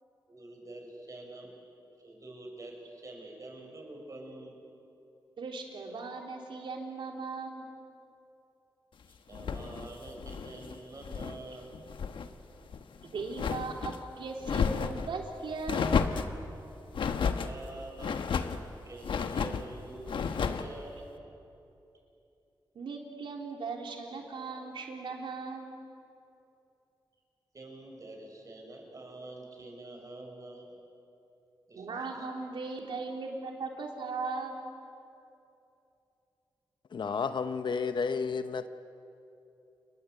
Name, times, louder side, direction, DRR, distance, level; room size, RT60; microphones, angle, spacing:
voice 1, 0.3-1.5 2.0-4.5 9.3-11.7 17.4-18.5 18.8-21.1 27.5-30.7 31.7-32.1, right 2 dB, 40° right, 1 dB, 6.8 m, -46 dB
voice 2, 5.4-7.7 13.0-16.0 22.8-25.8 31.8-34.7, right 3 dB, 85° right, 1 dB, 3.5 m, -38 dB
sound 1, 9.3-11.4 11.7-12.3 12.7-14.0 14.4-15.1 15.7-16.3 16.9-17.5 18.0-18.6 19.0-19.7 20.1-20.7, left 6 dB, 90° left, 1.2 m, -32 dB
voice 3, 36.9-38.7, left 5 dB, 70° left, 10 dB, 1.0 m, -31 dB
29.5 x 21.0 x 8.3 m, 2.8 s
cardioid pair, 80°, 8 cm